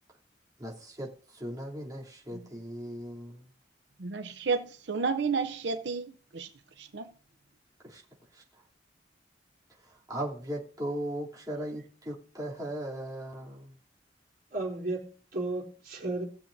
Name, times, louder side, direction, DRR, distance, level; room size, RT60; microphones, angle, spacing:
voice 1, 0.6-3.5 7.8-8.0 8.3-8.4 9.8-13.8, right 1 dB, 20° right, 3.1 m, -38 dB
voice 2, 4.0-6.5 6.8-7.1, right 5 dB, 90° right, 0.7 m, -31 dB
voice 3, 14.5-16.2, right 2 dB, 60° right, 3.9 m, -34 dB
19.0 x 7.2 x 2.7 m
head